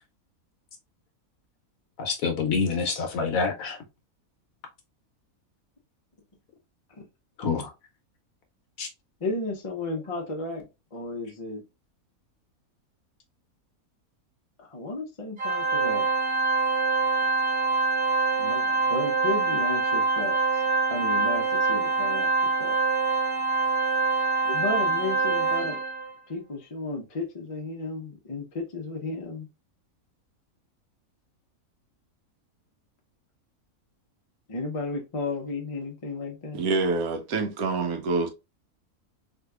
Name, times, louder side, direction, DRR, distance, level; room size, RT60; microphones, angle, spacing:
voice 1, 2.0-3.8 7.4-7.7 8.8-8.9, left 5 dB, 70° left, 1.1 m, -27 dB
voice 2, 9.2-11.6 14.6-16.1 18.4-20.6 20.9-22.8 24.4-25.8 26.3-29.5 34.5-36.6, left 3 dB, 30° left, 0.6 m, -33 dB
Organ, 15.4-26.1, right 4 dB, 40° right, 0.8 m, -25 dB
voice 3, 36.5-38.3, right 3 dB, 75° right, 1.2 m, -26 dB
3.5 x 2.8 x 2.3 m
omnidirectional pair, 1.6 m